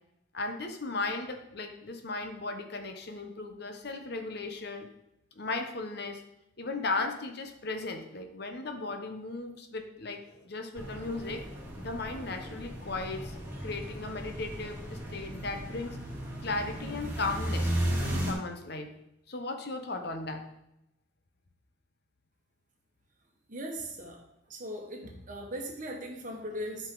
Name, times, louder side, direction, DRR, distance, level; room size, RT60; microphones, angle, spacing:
voice 1, 0.3-4.9 5.3-6.2 6.6-11.4 11.8-13.3 13.6-16.0 16.4-18.9 19.3-20.4, left 3 dB, 55° left, 5 dB, 1.0 m, -36 dB
sound 1, 10.8-18.3, equal, 15° right, 2.9 m, -35 dB
voice 2, 23.5-24.2 24.5-26.9, equal, 40° right, 1 dB, 1.5 m, -39 dB
12.0 x 5.3 x 3.9 m, 0.84 s
head